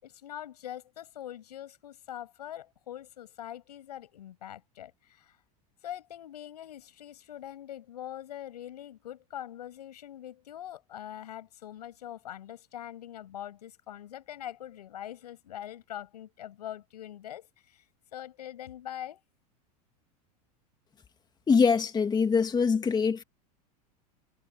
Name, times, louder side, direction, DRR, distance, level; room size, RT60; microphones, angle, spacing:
voice 1, 0.0-5.4 5.8-17.8 18.1-19.2, left 11 dB, 85° left, 7.9 m, -43 dB
voice 2, 21.5-23.2, left 5 dB, 20° left, 2.4 m, -23 dB
hypercardioid pair, 105°, 20 cm